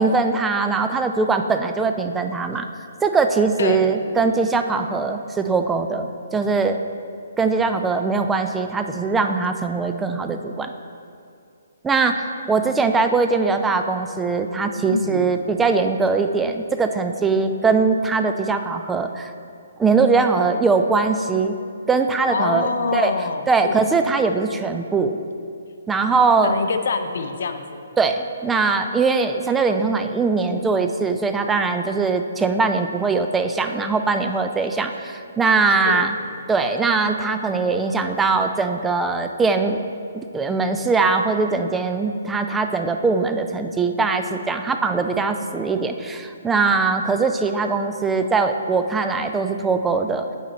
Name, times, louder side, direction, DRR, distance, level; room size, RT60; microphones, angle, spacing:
voice 1, 0.0-2.7 3.0-6.8 7.4-10.7 11.8-19.3 19.8-21.5 21.9-23.1 23.5-25.2 25.9-26.6 28.0-36.1 36.5-39.8 40.1-50.2, right 4 dB, 10° right, 6 dB, 0.3 m, -21 dB
voice 2, 3.6-3.9 14.8-15.4 22.3-23.9 26.4-27.9 35.8-36.1, left 4 dB, 65° left, 7 dB, 0.5 m, -25 dB
8.2 x 4.4 x 4.1 m, 2.4 s
hypercardioid pair, 140°, 0 cm